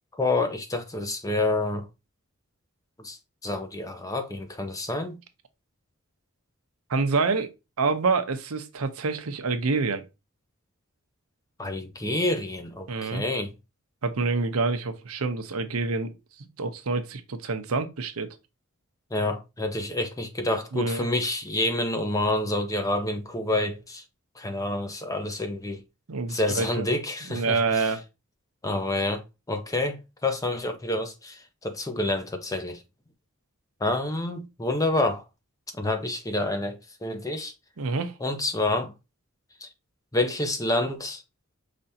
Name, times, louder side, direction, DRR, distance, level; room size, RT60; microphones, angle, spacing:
voice 1, 0.1-1.8 3.0-3.2 3.4-5.2 11.6-13.5 19.1-24.0 24.4-25.8 26.3-27.9 28.6-32.8 33.8-35.2 35.8-37.5 38.2-38.9 39.6-39.7 40.1-41.2, left 2 dB, 15° left, 0.6 m, -28 dB
voice 2, 6.9-7.5 7.8-10.0 12.9-13.2 14.0-16.1 16.6-18.3 20.7-21.1 26.1-26.8 27.3-28.0 37.8-38.1, right 4 dB, 80° right, 0.7 m, -27 dB
5.1 x 3.3 x 2.7 m
head